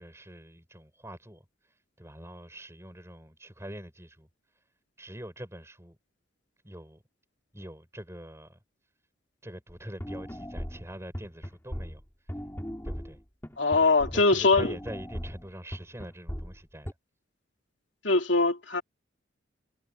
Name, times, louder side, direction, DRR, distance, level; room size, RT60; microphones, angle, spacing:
voice 1, 0.0-4.6 5.0-6.0 6.6-7.0 7.5-8.6 9.4-12.4 12.8-13.2 14.1-16.9, right 1 dB, 15° right, 5.3 m, -44 dB
sound 1, 9.7-9.8 10.0-14.3 14.6-16.9, equal, 10° left, 4.1 m, -38 dB
voice 2, 13.6-14.7 18.0-18.8, left 3 dB, 65° left, 3.0 m, -22 dB
head